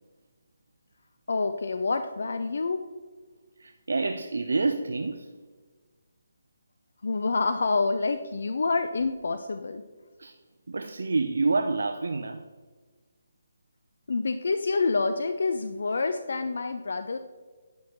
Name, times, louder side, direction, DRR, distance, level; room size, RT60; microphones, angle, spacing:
voice 1, 1.3-2.8 7.0-9.8 14.1-17.2, left 3 dB, 65° left, 0.4 m, -27 dB
voice 2, 3.6-5.4 10.2-10.4 10.7-12.5, right 3 dB, 75° right, 0.4 m, -28 dB
9.4 x 6.3 x 3.0 m
figure-of-eight pair, 150°, 0 cm